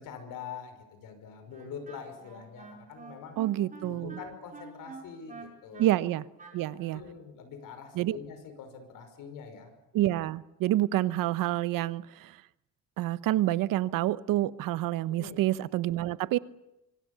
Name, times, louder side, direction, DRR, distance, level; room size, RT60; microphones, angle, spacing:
voice 1, 0.0-3.4 3.8-5.9 6.7-9.7 15.1-15.4, left 6 dB, 75° left, 5.6 m, -44 dB
Wind instrument woodwind instrument, 1.5-7.1, right 4 dB, 25° right, 5.4 m, -47 dB
voice 2, 3.4-4.2 5.8-6.3 6.5-7.0 7.9-8.2 9.9-12.4 13.0-16.4, right 14 dB, 90° right, 0.9 m, -28 dB
25.5 x 24.5 x 6.9 m
cardioid pair, 165°, 32 cm